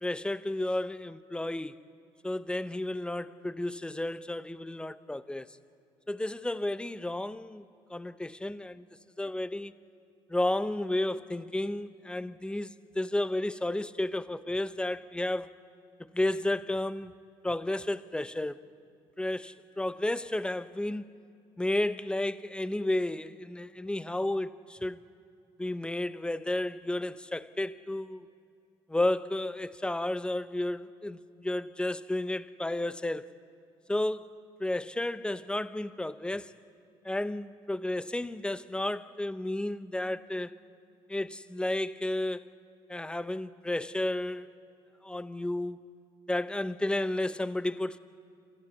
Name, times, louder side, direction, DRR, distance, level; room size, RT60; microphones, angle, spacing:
voice 1, 0.0-1.8 2.2-5.5 6.1-7.6 7.9-8.8 9.2-9.7 10.3-15.5 16.1-17.1 17.4-18.6 19.2-21.0 21.6-25.0 25.6-28.2 28.9-33.3 33.9-34.3 34.6-36.5 37.0-40.6 41.1-42.4 42.9-44.5 45.0-45.8 46.3-48.0, left 1 dB, 10° left, 0.8 m, -32 dB
27.0 x 14.5 x 8.3 m
supercardioid pair, 65°, 12 cm